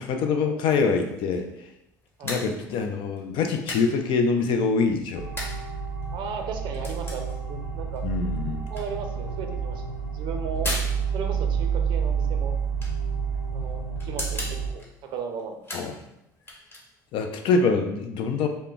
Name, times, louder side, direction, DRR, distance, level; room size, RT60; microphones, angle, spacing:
voice 1, 0.0-1.5 2.2-5.3 8.0-8.7 15.7-15.9 17.1-18.5, left 4 dB, 55° left, 5 dB, 0.4 m, -24 dB
sound 1, 0.8-17.2, left 1 dB, 20° left, 1.1 m, -41 dB
sound 2, 5.1-14.7, right 6 dB, 70° left, 1.0 m, -29 dB
voice 2, 6.1-8.0 8.7-10.7 11.1-12.5 13.5-15.6, right 5 dB, 55° right, 5 dB, 0.5 m, -36 dB
2.2 x 2.1 x 3.7 m, 0.87 s
hypercardioid pair, 65°, 10 cm